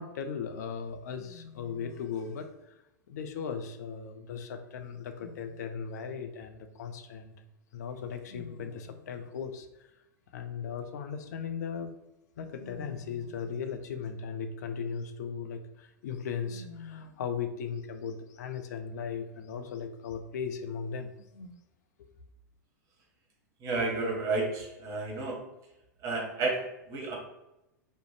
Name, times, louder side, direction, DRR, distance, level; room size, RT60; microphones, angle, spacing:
voice 1, 0.0-2.8 3.1-7.3 7.7-9.9 10.3-11.9 12.4-21.6, left 6 dB, 60° left, 7 dB, 0.4 m, -37 dB
voice 2, 23.6-25.5 26.0-27.2, right 3 dB, 35° right, -1 dB, 0.9 m, -31 dB
2.4 x 2.0 x 3.1 m, 0.92 s
figure-of-eight pair, 95°, 10 cm